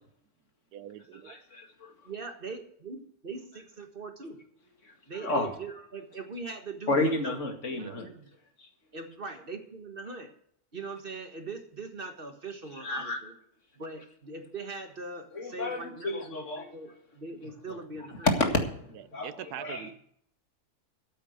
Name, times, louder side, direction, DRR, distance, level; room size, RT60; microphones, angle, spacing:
voice 1, 0.7-1.4 7.7-8.0 19.2-19.9, right 12 dB, 90° right, 16 dB, 1.2 m, -42 dB
voice 2, 1.2-1.9 4.8-4.9 5.2-5.5 6.9-8.1 8.6-8.7 12.8-13.2 15.3-16.7 17.7-17.8 18.2-18.8 19.1-19.9, left 2 dB, 50° left, 4 dB, 2.4 m, -30 dB
voice 3, 2.0-4.4 5.1-7.4 7.7-8.3 8.9-10.3 10.7-13.3 13.7-18.3 19.1-19.2, right 4 dB, 35° right, 6 dB, 1.7 m, -41 dB
13.0 x 8.7 x 6.6 m, 0.67 s
omnidirectional pair, 1.6 m